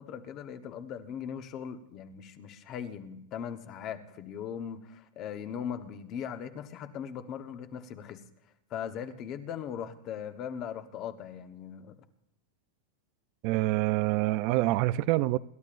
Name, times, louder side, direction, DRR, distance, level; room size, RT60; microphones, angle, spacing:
voice 1, 0.0-8.2 8.7-12.0, left 8 dB, 35° left, 1.1 m, -39 dB
voice 2, 13.4-15.4, right 17 dB, 45° right, 0.4 m, -26 dB
26.5 x 12.0 x 2.5 m
supercardioid pair, 150°, 0 cm